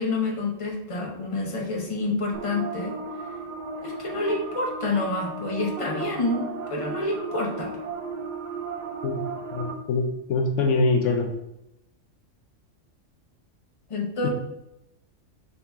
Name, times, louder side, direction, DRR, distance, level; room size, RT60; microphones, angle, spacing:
voice 1, 0.0-2.9 3.8-7.7 13.9-14.3, left 2 dB, 30° left, -1 dB, 0.9 m, -28 dB
sound 1, 2.3-9.7, right 4 dB, 60° right, 0.5 m, -35 dB
voice 2, 9.5-11.3 14.2-14.3, left 3 dB, 75° left, 2 dB, 0.9 m, -24 dB
5.5 x 2.8 x 3.5 m, 0.87 s
omnidirectional pair, 1.3 m